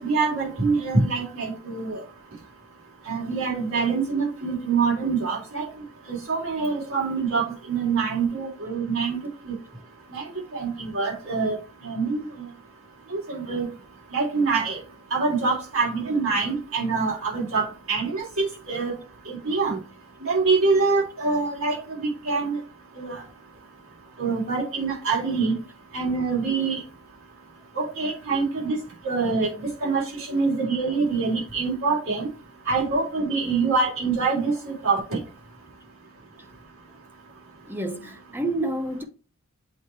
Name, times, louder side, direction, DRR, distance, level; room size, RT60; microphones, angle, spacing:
voice 1, 0.0-2.0 3.1-5.7 6.1-9.2 9.4-9.5 10.1-10.3 10.5-11.5 11.8-12.5 13.1-13.7 14.1-14.8 15.1-18.9 19.3-19.8 20.2-22.6 23.0-23.2 24.2-25.5 25.9-26.8 27.7-28.8 29.0-32.3 32.7-35.2, right 4 dB, 65° right, 3.6 m, -25 dB
voice 2, 37.7-39.0, right 1 dB, 10° right, 0.6 m, -30 dB
8.2 x 3.1 x 4.5 m
head